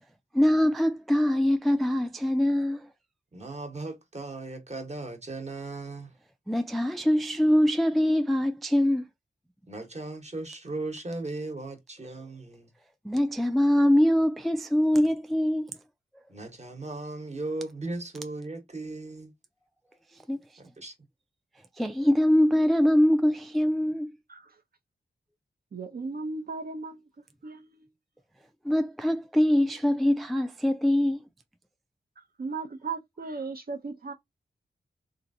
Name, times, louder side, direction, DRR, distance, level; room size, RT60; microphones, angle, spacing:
voice 1, 0.3-2.8 6.5-9.1 13.1-15.7 20.3-20.4 21.8-24.1 28.7-31.2, equal, ahead, 0.3 m, -23 dB
voice 2, 3.3-6.1 9.7-12.7 16.3-19.3 20.6-20.9, right 2 dB, 35° right, 1.1 m, -37 dB
voice 3, 25.7-27.0 27.4-27.9 32.2-34.1, right 4 dB, 50° right, 0.6 m, -36 dB
2.9 x 2.4 x 2.6 m
cardioid pair, 45°, 20 cm